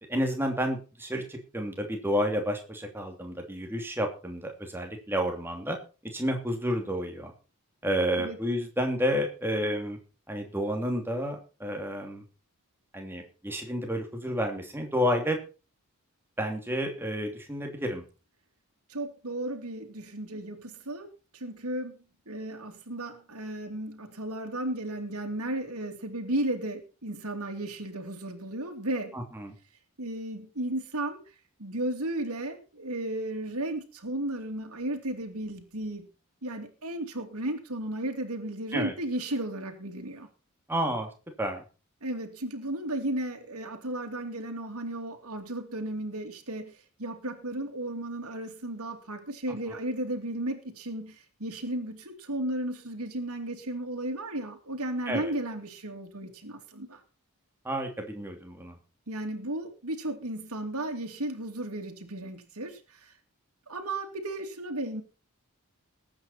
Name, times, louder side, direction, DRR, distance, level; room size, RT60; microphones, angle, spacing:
voice 1, 0.1-5.8 6.0-7.3 7.8-10.0 10.3-12.2 12.9-15.4 16.4-18.0 29.1-29.5 38.7-38.9 40.7-41.1 41.4-41.6 55.1-55.3 57.6-58.8, equal, 10° right, 3 dB, 2.9 m, -30 dB
voice 2, 18.9-21.1 21.3-22.0 22.3-29.2 30.0-31.2 31.6-36.1 36.4-40.3 42.0-57.0 59.1-63.1 63.7-65.0, right 1 dB, 85° right, 3 dB, 2.7 m, -34 dB
19.5 x 8.9 x 4.3 m, 0.34 s
head